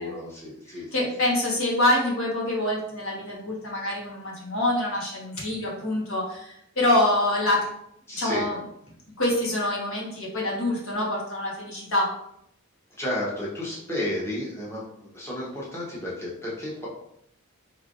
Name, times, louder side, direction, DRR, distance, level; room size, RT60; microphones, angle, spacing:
voice 1, 0.0-0.9 8.1-8.5 13.0-16.9, left 1 dB, 10° left, -7 dB, 0.9 m, -32 dB
voice 2, 0.7-7.7 8.1-8.6 9.2-12.1, left 1 dB, 60° left, -4 dB, 1.3 m, -25 dB
4.6 x 3.3 x 2.5 m, 0.75 s
head